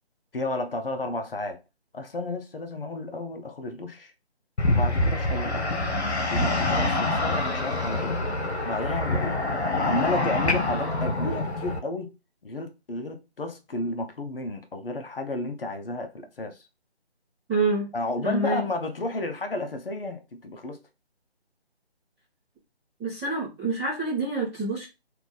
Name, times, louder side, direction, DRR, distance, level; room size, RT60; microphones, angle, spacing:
voice 1, 0.3-1.6 1.9-4.1 4.7-5.8 6.3-8.2 8.6-9.4 9.8-12.1 12.4-16.6 17.9-20.8, left 2 dB, 60° left, 0.8 m, -32 dB
sound 1, 4.6-11.8, left 2 dB, 85° left, 1.1 m, -26 dB
voice 2, 17.5-17.9 18.2-18.6 23.0-24.8, right 2 dB, ahead, 0.7 m, -27 dB
3.4 x 2.4 x 3.9 m
figure-of-eight pair, 160°, 33 cm